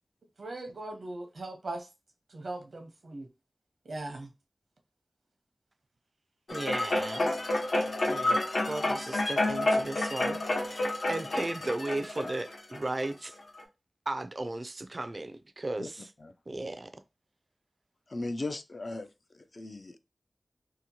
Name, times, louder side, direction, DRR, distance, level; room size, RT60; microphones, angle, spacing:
voice 1, 0.4-1.9 2.3-3.3 3.8-4.3, right 2 dB, 85° right, 0.7 m, -39 dB
sound 1, 6.5-13.0 13.6-13.7, left 2 dB, 75° left, 0.8 m, -29 dB
voice 2, 6.5-7.3 8.1-8.4 8.7-13.4 14.1-16.1 16.5-17.0, right 2 dB, 45° right, 0.3 m, -36 dB
voice 3, 18.1-19.1 19.4-20.0, left 2 dB, 55° left, 0.3 m, -37 dB
2.8 x 2.2 x 2.7 m
wide cardioid pair, 65°, 0 cm